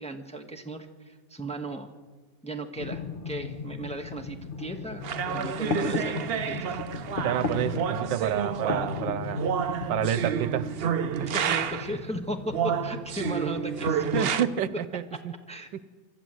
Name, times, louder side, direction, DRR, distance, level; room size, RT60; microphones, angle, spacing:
voice 1, 0.0-1.9 2.4-6.8 11.2-14.3 15.5-15.8, right 1 dB, 5° left, 3 dB, 1.2 m, -36 dB
sound 1, 2.8-14.2, left 4 dB, 35° left, 1.1 m, -36 dB
sound 2, 5.0-12.0 12.5-14.4, right 8 dB, 65° right, 0.5 m, -30 dB
voice 2, 7.2-9.5 9.9-10.7 11.2-11.3 14.1-15.0, right 10 dB, 80° right, 15 dB, 1.5 m, -29 dB
25.5 x 13.0 x 7.9 m, 1.3 s
omnidirectional pair, 1.9 m